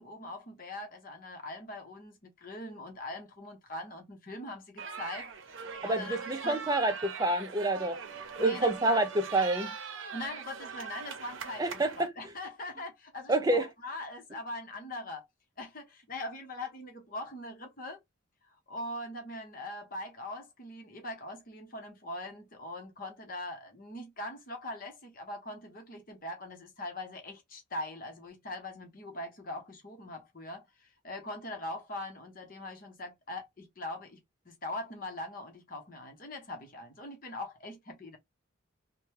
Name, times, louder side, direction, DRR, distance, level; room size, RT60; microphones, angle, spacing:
voice 1, 0.0-5.3 5.8-6.6 8.4-9.0 10.1-15.3 15.6-18.0 18.7-38.2, left 1 dB, 45° left, 0.9 m, -42 dB
sound 1, 4.8-12.1, right 6 dB, 70° right, 0.6 m, -41 dB
voice 2, 5.8-8.0 8.4-9.7 11.6-12.1 13.3-13.7, right 2 dB, 20° right, 0.4 m, -28 dB
3.0 x 2.2 x 3.1 m
head